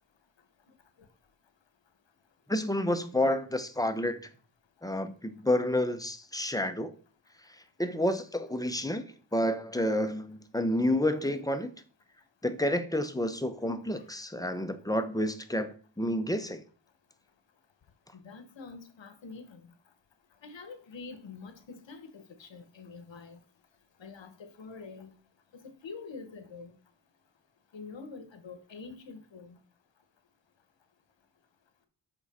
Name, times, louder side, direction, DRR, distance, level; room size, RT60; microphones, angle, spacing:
voice 1, 2.5-4.2 4.8-6.9 7.8-11.7 12.4-16.6, left 1 dB, 10° left, 0.7 m, -29 dB
voice 2, 18.2-19.6 20.4-23.4 24.0-25.1 25.5-26.7 27.7-29.6, left 4 dB, 75° left, 1.0 m, -46 dB
7.3 x 4.6 x 4.1 m
wide cardioid pair, 90°, 45 cm